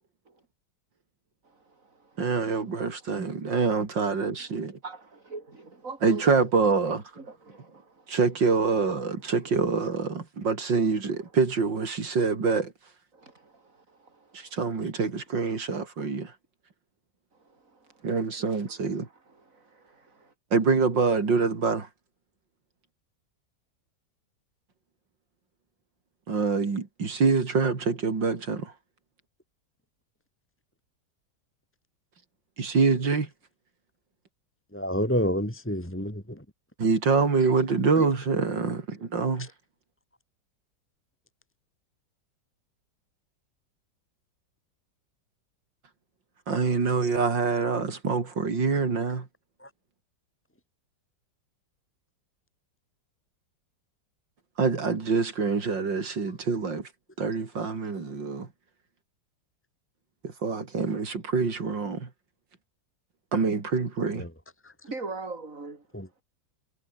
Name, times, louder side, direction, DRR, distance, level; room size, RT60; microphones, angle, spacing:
voice 1, 1.4-2.2 4.8-6.3 7.2-8.2 13.1-14.6 17.3-18.1 18.7-18.8 19.3-20.3 64.8-65.8, right 3 dB, 45° right, 4.5 m, -43 dB
voice 2, 2.2-4.8 6.0-7.0 8.1-12.7 14.3-16.3 18.0-19.1 20.5-21.9 26.3-28.7 32.6-33.3 36.8-39.5 46.5-49.3 54.6-56.9 57.2-58.5 60.2-62.1 63.3-64.3, right 4 dB, 85° right, 3.9 m, -25 dB
voice 3, 34.7-36.4 38.0-38.1 49.6-49.7 64.2-64.3 64.6-64.7 65.9-66.2, equal, 5° left, 4.6 m, -29 dB
omnidirectional pair, 1.9 m